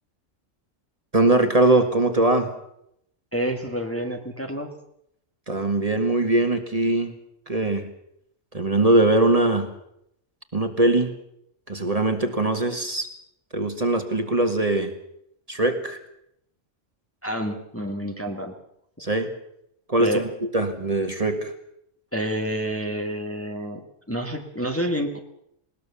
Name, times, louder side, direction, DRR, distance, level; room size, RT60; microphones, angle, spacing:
voice 1, 1.1-2.5 5.5-7.1 7.5-7.9 8.5-9.7 10.5-11.1 11.7-13.1 13.5-14.9 15.5-16.0 19.0-19.3 19.9-21.5, right 2 dB, 30° right, 6 dB, 1.9 m, -21 dB
voice 2, 3.3-4.7 17.2-18.5 20.0-20.2 22.1-23.8 24.1-25.2, equal, 10° left, 4 dB, 1.6 m, -28 dB
20.5 x 19.0 x 7.0 m, 0.75 s
omnidirectional pair, 1.3 m